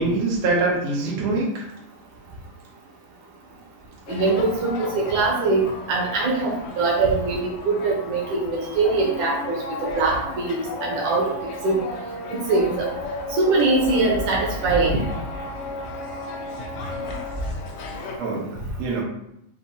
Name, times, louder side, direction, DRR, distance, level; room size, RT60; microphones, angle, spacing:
voice 1, 0.0-1.7 18.2-18.5 18.8-19.0, right 3 dB, 90° right, -4 dB, 1.4 m, -23 dB
sound 1, 4.1-18.2, left 2 dB, 85° left, 1.8 m, -33 dB
voice 2, 4.1-5.6 5.9-11.3 11.6-11.8 12.5-12.9 13.3-15.0, right 3 dB, 70° right, -2 dB, 1.8 m, -22 dB
6.3 x 2.7 x 2.7 m, 0.78 s
omnidirectional pair, 4.4 m